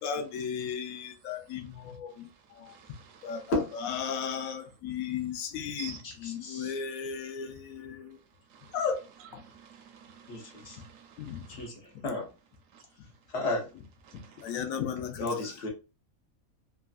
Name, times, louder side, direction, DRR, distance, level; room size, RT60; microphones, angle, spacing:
voice 1, 0.0-2.3 2.5-2.7 3.2-5.9 6.2-8.2 8.7-9.0 11.2-11.4 14.4-15.3, left 7 dB, 80° left, 1.0 m, -35 dB
voice 2, 2.7-3.5 4.0-4.2 5.8-6.0 8.5-8.8 9.2-11.7 12.7-12.8 14.0-14.6, right 7 dB, 70° right, 0.9 m, -50 dB
voice 3, 6.0-6.8 10.3-10.8 11.5-11.7 12.0-12.2 13.3-13.7 15.2-15.7, left 2 dB, 55° left, 1.0 m, -32 dB
3.1 x 2.3 x 2.4 m
omnidirectional pair, 1.4 m